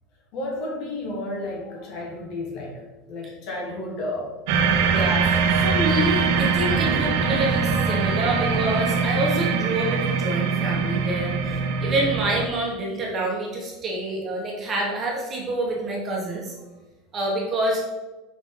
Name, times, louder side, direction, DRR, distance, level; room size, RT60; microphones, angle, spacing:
voice 1, 0.3-4.3 4.9-5.1, left 1 dB, 45° left, -1 dB, 1.5 m, -32 dB
sound 1, 4.5-12.5, right 5 dB, 70° right, 0.7 m, -22 dB
voice 2, 4.8-16.5 17.1-17.8, right 1 dB, 25° right, -2 dB, 1.3 m, -27 dB
5.1 x 4.8 x 3.8 m, 1.1 s
supercardioid pair, 160°, 0 cm